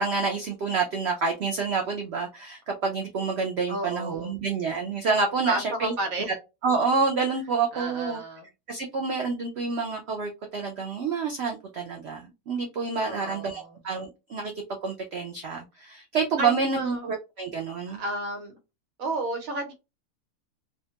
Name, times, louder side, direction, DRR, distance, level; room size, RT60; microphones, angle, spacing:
voice 1, 0.0-5.9 6.6-8.2 8.7-14.5 14.8-18.0, right 4 dB, 80° right, 0.5 m, -28 dB
voice 2, 3.7-4.4 5.4-6.3 7.7-8.5 13.0-13.8 16.4-17.1 17.9-18.6 19.0-19.7, right 2 dB, 65° right, 1.1 m, -32 dB
2.8 x 2.2 x 2.8 m
omnidirectional pair, 1.7 m